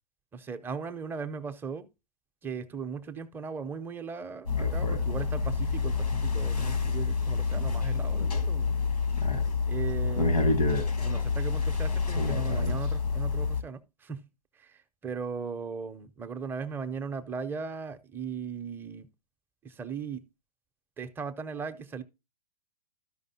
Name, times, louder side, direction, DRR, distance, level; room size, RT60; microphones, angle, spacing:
voice 1, 0.3-1.9 2.4-8.7 9.7-14.2 14.6-14.7 15.0-19.1 19.6-20.2 21.0-22.0, right 5 dB, 10° right, 0.5 m, -38 dB
sound 1, 4.5-13.6, left 4 dB, 85° left, 1.3 m, -27 dB
13.5 x 5.2 x 2.7 m
figure-of-eight pair, 110°, 20 cm